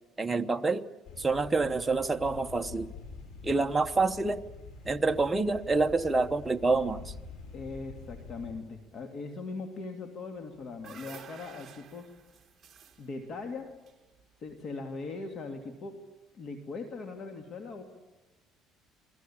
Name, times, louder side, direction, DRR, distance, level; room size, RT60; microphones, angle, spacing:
voice 1, 0.2-0.9 1.2-2.9 3.4-4.4 4.8-7.1, right 3 dB, 10° right, 6 dB, 1.1 m, -27 dB
sound 1, 1.1-8.5, left 4 dB, 85° left, 5.8 m, -46 dB
voice 2, 7.5-12.1 13.0-13.7 14.4-16.0 16.3-17.8, left 3 dB, 45° left, 5 dB, 2.4 m, -40 dB
sound 2, 10.4-14.6, right 7 dB, 30° right, 2.1 m, -52 dB
29.5 x 21.5 x 8.7 m, 1.0 s
cardioid pair, 135°, 0 cm